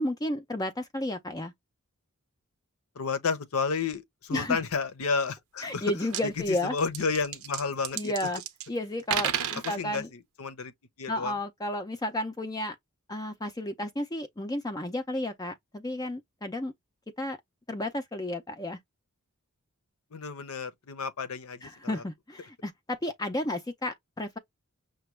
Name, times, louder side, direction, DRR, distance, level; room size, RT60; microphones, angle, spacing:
voice 1, 0.0-1.5 4.3-4.6 5.6-6.8 7.9-8.4 8.7-10.1 11.1-12.8 13.1-16.7 17.2-17.4 17.7-18.8 21.6-24.4, left 1 dB, 15° left, 0.4 m, -32 dB
voice 2, 3.0-5.9 6.2-8.1 9.6-10.7 11.0-11.3 20.1-22.0, left 5 dB, 75° left, 0.7 m, -31 dB
sound 1, 5.7-5.8 6.0-6.2 6.8-8.7 9.0-9.8, right 9 dB, 70° right, 0.7 m, -32 dB
5.9 x 2.3 x 3.1 m
head